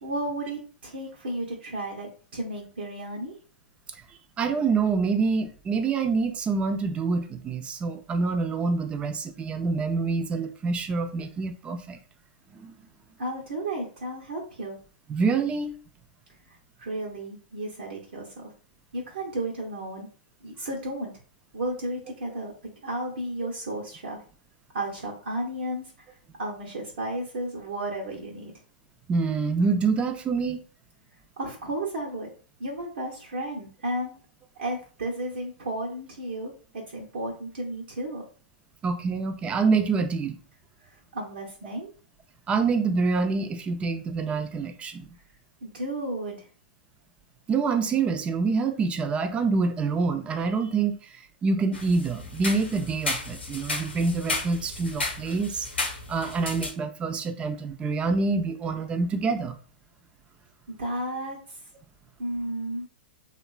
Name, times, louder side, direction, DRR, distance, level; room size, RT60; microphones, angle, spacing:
voice 1, 0.0-3.4 13.2-14.8 16.5-18.5 18.9-20.1 20.4-21.1 21.5-24.2 24.7-28.5 31.4-32.3 32.6-34.1 34.6-38.2 40.9-41.9 45.6-46.5 60.7-61.6 62.2-62.9, right 1 dB, 70° right, 0.7 m, -33 dB
voice 2, 4.4-12.0 12.5-12.7 15.1-15.8 29.1-30.6 38.8-40.4 42.5-45.1 47.5-59.6, right 4 dB, 20° right, 0.4 m, -26 dB
sound 1, 51.7-56.7, left 3 dB, 90° left, 0.8 m, -33 dB
2.9 x 2.2 x 2.3 m
hypercardioid pair, 115°, 6 cm